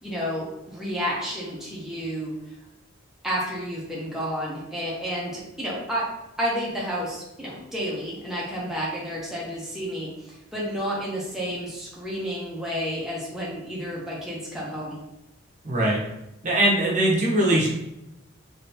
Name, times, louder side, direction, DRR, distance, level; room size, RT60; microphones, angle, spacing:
voice 1, 0.0-2.3 3.2-6.1 6.4-10.1 10.5-15.0, equal, ahead, -6 dB, 0.8 m, -30 dB
voice 2, 15.6-16.0 16.4-17.7, right 1 dB, 40° right, -3 dB, 0.9 m, -21 dB
3.6 x 3.2 x 2.8 m, 0.90 s
head